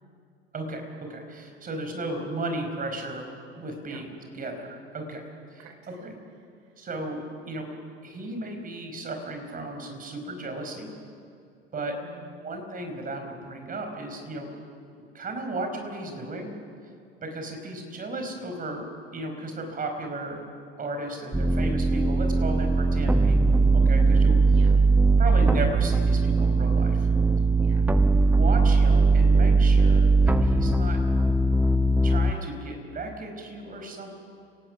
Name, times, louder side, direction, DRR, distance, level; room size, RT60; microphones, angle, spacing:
voice 1, 0.5-3.3 3.6-4.1 4.3-5.6 6.0-6.1 6.8-7.7 8.0-10.9 11.7-12.0 12.4-14.5 15.1-16.5 17.2-18.8 19.1-20.4 20.8-24.4 25.2-27.1 28.3-31.0 32.0-34.2, right 2 dB, 25° right, 4 dB, 5.1 m, -35 dB
voice 2, 5.6-6.1 6.6-6.7 11.8-12.5 24.5-24.8 27.5-27.9, right 5 dB, 55° right, 5 dB, 4.2 m, -50 dB
sound 1, 21.3-32.3, right 3 dB, 5° right, 0.6 m, -20 dB
30.0 x 18.5 x 6.2 m, 2.4 s
figure-of-eight pair, 75°, 31 cm